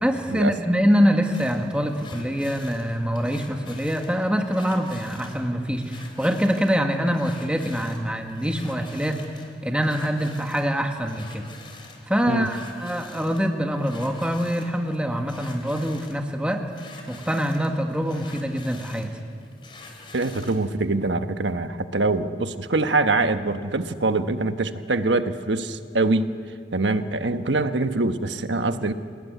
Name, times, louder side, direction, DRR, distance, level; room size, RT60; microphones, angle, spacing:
voice 1, 0.0-9.2 9.6-11.5 12.1-16.7 17.1-19.1, equal, 5° right, 3 dB, 1.6 m, -24 dB
sound 1, 1.3-20.7, left 3 dB, 25° left, 3.4 m, -47 dB
voice 2, 20.1-26.3 26.7-28.9, right 2 dB, 80° right, 9 dB, 1.2 m, -24 dB
29.0 x 18.5 x 9.4 m, 2.3 s
head